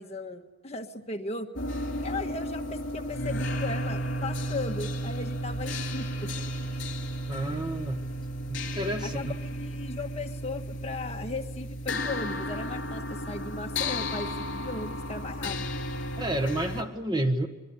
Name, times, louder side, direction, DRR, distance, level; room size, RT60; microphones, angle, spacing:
voice 1, 0.0-1.5 2.0-6.5 6.7-6.9 9.0-15.6, left 3 dB, 35° left, 3 dB, 1.6 m, -37 dB
sound 1, 1.6-16.8, equal, 70° left, 3.9 m, -33 dB
voice 2, 7.3-8.0 8.5-9.3 16.2-17.5, right 1 dB, 25° right, 7 dB, 1.4 m, -30 dB
24.5 x 23.0 x 9.9 m, 1.2 s
head